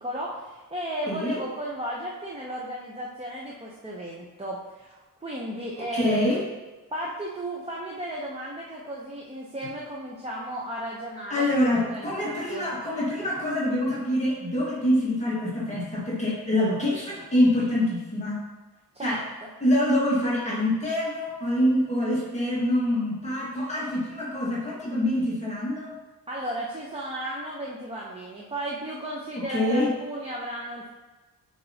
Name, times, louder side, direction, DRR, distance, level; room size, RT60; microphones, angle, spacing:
voice 1, 0.0-6.4 6.9-12.7 18.9-19.2 26.3-30.9, right 1 dB, 15° right, -4 dB, 0.6 m, -34 dB
voice 2, 1.1-1.4 5.9-6.4 11.3-18.4 19.0-19.2 19.6-25.9 29.5-29.9, left 1 dB, 20° left, -7 dB, 1.4 m, -25 dB
8.7 x 4.5 x 2.7 m, 1.3 s
wide cardioid pair, 170°, 36 cm